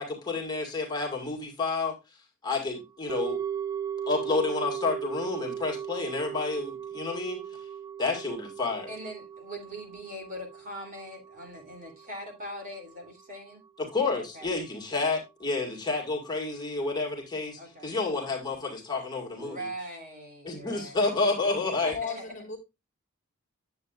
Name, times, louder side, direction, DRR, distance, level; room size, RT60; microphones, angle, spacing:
voice 1, 0.0-3.4 4.1-7.7 8.0-8.9 13.8-19.7 20.4-22.0, left 3 dB, 20° left, 1.9 m, -30 dB
sound 1, 3.1-13.4 13.6-13.7, right 8 dB, 15° right, 0.4 m, -37 dB
voice 2, 8.9-13.6 14.3-14.5 17.6-17.9 19.4-21.0 21.9-22.3, equal, 40° right, 2.9 m, -41 dB
voice 3, 21.7-22.6, left 5 dB, 35° left, 2.1 m, -37 dB
9.8 x 7.7 x 2.4 m
head